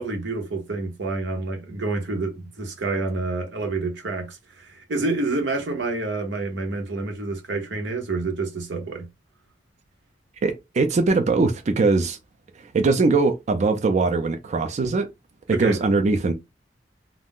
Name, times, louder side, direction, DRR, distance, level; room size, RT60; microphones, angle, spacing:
voice 1, 0.0-9.1 15.5-15.8, right 3 dB, 90° right, 0.8 m, -28 dB
voice 2, 10.4-12.2 12.6-15.1 15.5-16.3, right 3 dB, 40° right, 0.4 m, -21 dB
2.4 x 2.0 x 3.6 m
head